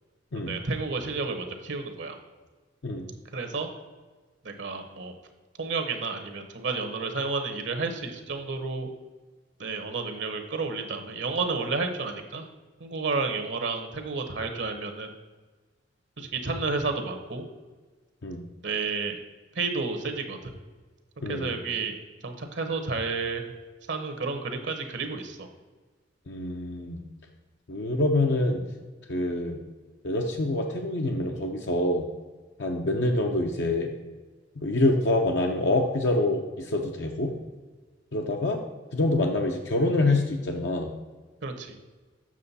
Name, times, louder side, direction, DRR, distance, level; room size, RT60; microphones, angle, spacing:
voice 1, 0.5-2.2 3.3-3.7 4.4-5.1 5.6-8.9 9.6-12.5 12.8-15.1 16.2-17.4 18.6-19.2 19.6-20.5 21.3-22.0 22.2-23.4 23.9-25.5 41.4-41.7, right 4 dB, 70° right, 6 dB, 1.0 m, -31 dB
voice 2, 21.2-21.6 26.3-27.0 27.7-28.6 29.1-29.6 30.0-32.1 32.6-33.9 34.6-37.3 38.1-38.6 38.9-40.9, left 2 dB, 65° left, 2 dB, 0.7 m, -26 dB
7.5 x 6.2 x 4.1 m, 1.3 s
head